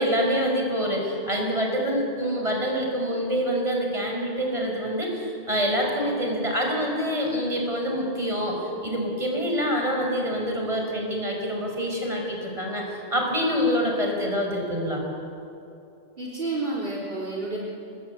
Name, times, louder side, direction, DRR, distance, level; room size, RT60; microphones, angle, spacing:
voice 1, 0.0-15.0, equal, 30° right, 0 dB, 5.7 m, -26 dB
voice 2, 16.2-17.6, right 2 dB, 55° right, -4 dB, 3.8 m, -30 dB
26.0 x 21.5 x 8.7 m, 2.7 s
omnidirectional pair, 1.1 m